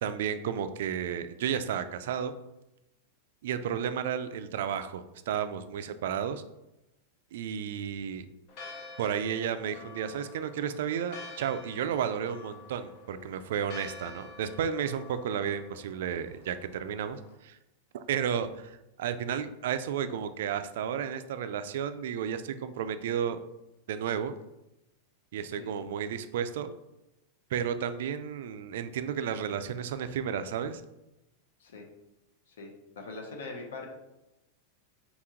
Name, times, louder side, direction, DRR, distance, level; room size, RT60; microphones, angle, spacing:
voice 1, 0.0-2.3 3.4-6.4 7.3-8.3 9.0-17.6 17.9-23.4 23.9-24.3 25.3-26.7 27.5-30.8, right 8 dB, 60° right, 11 dB, 0.3 m, -32 dB
Church bell, 8.5-17.4, left 3 dB, 35° left, 0.6 m, -48 dB
voice 2, 33.0-33.9, left 3 dB, 80° left, 3 dB, 0.8 m, -41 dB
4.2 x 2.9 x 3.7 m, 0.93 s
supercardioid pair, 175°, 0 cm